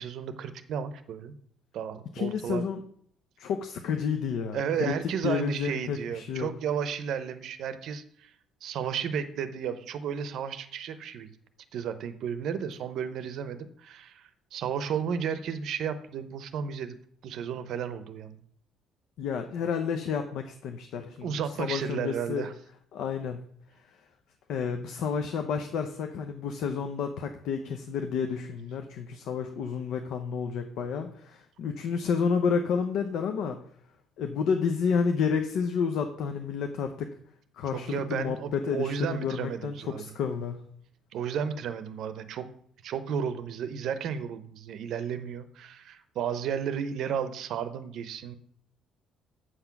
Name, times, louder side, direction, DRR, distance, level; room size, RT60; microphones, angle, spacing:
voice 1, 0.0-1.3 1.7-2.6 4.5-8.3 8.6-11.3 11.7-17.0 17.2-18.4 21.2-22.5 37.7-40.0 41.1-42.5 42.8-48.4, right 7 dB, 55° right, 12 dB, 0.7 m, -33 dB
voice 2, 2.1-2.8 3.4-4.9 5.2-6.5 19.2-22.5 22.9-23.4 23.9-24.0 24.5-33.6 34.2-37.1 37.5-40.6, left 6 dB, 60° left, 6 dB, 0.7 m, -30 dB
7.9 x 6.0 x 5.8 m, 0.63 s
cardioid pair, 165°, 0 cm